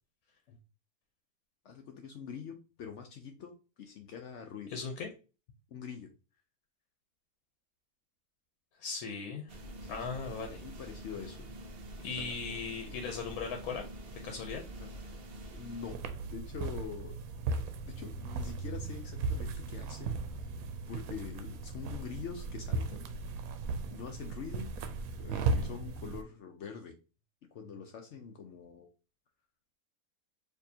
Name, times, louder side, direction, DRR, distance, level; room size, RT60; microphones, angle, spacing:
voice 1, 1.6-4.7 5.7-6.1 9.8-10.1 10.6-11.5 12.2-12.4 12.6-12.7 14.8-15.2 15.5-17.2 17.9-23.1 23.9-24.7 25.2-26.9 27.5-28.9, left 7 dB, 65° left, 5 dB, 0.8 m, -45 dB
voice 2, 4.7-5.1 8.8-9.6 9.9-10.6 12.0-13.9 14.2-14.6, left 5 dB, 90° left, 4 dB, 1.2 m, -38 dB
sound 1, 9.5-16.0, right 1 dB, 60° right, 0.6 m, -46 dB
sound 2, 15.9-26.2, right 3 dB, 80° right, 1.0 m, -36 dB
4.5 x 2.7 x 2.7 m, 0.32 s
omnidirectional pair, 1.5 m